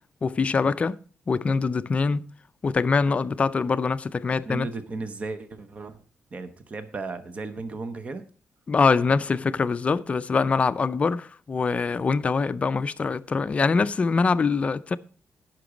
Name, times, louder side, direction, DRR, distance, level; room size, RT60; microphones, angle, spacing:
voice 1, 0.2-1.0 1.3-2.3 2.6-4.7 8.7-15.0, left 4 dB, 30° left, 0.4 m, -24 dB
voice 2, 4.5-6.0 6.3-8.2, right 3 dB, 30° right, 0.9 m, -35 dB
14.5 x 5.9 x 5.0 m
wide cardioid pair, 175°, 5 cm